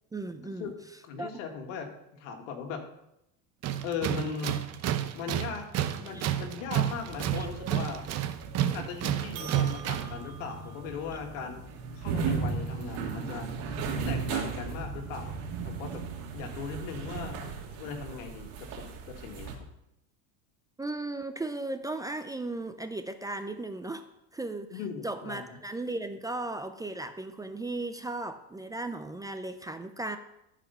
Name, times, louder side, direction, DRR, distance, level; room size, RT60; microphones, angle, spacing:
voice 1, 0.1-0.8 1.2-1.4 6.1-6.3 7.4-7.5 20.8-24.0 24.3-30.2, right 2 dB, 10° right, 8 dB, 0.4 m, -36 dB
voice 2, 1.0-2.8 3.8-4.6 5.1-8.1 8.6-11.6 11.9-13.5 14.0-16.0 16.3-17.4 17.8-19.6 24.7-25.6, left 6 dB, 85° left, 4 dB, 2.0 m, -38 dB
Tools, 3.6-10.2, right 11 dB, 40° right, 0.8 m, -31 dB
sound 1, 7.0-19.5, right 5 dB, 70° right, 2.3 m, -36 dB
13.0 x 5.0 x 5.7 m, 0.84 s
supercardioid pair, 125°, 38 cm